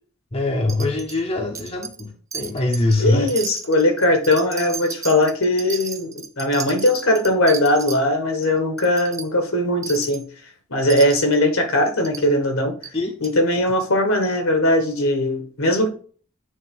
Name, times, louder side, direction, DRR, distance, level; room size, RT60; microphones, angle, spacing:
voice 1, 0.3-3.3 12.9-13.1, left 2 dB, 25° left, 0.8 m, -22 dB
Wind chime, 0.7-1.2 1.5-2.1 2.3-3.0 3.3-8.0 8.4-8.5 8.8-9.3 9.8-10.2 10.9-11.4 12.0-12.3 12.8-12.9 13.2-13.3, right 6 dB, 15° right, 0.4 m, -34 dB
voice 2, 3.0-10.2 10.7-12.7 13.2-15.9, left 1 dB, 70° left, 1.7 m, -19 dB
9.3 x 3.3 x 3.7 m
head